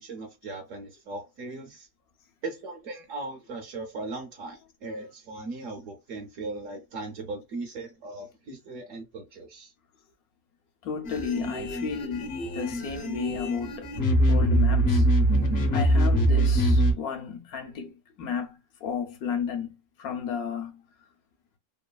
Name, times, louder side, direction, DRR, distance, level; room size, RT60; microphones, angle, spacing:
voice 1, 0.0-1.9 2.4-9.7, right 3 dB, 65° right, 0.9 m, -38 dB
voice 2, 10.8-13.9 14.3-15.1 15.7-20.8, left 6 dB, 75° left, 1.0 m, -33 dB
sound 1, 11.1-16.9, right 1 dB, 55° left, 0.8 m, -23 dB
3.1 x 2.2 x 2.2 m
omnidirectional pair, 1.6 m